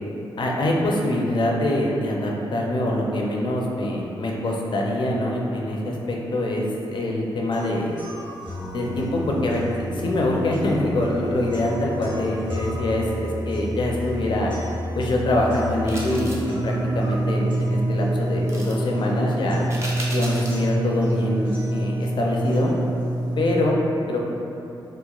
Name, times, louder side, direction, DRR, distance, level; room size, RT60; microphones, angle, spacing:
voice 1, 0.4-7.9 8.7-9.6 9.9-14.5 15.0-19.6 20.1-22.7 23.4-23.8 24.1-24.2, left 1 dB, 55° left, -1 dB, 0.4 m, -24 dB
sound 1, 7.5-23.5, right 1 dB, 55° right, 1.2 m, -28 dB
sound 2, 15.9-16.5 18.5-18.8 19.7-20.7 21.1-21.2, right 1 dB, 30° right, 0.5 m, -35 dB
2.9 x 2.1 x 2.3 m, 2.8 s
cardioid pair, 60°, 10 cm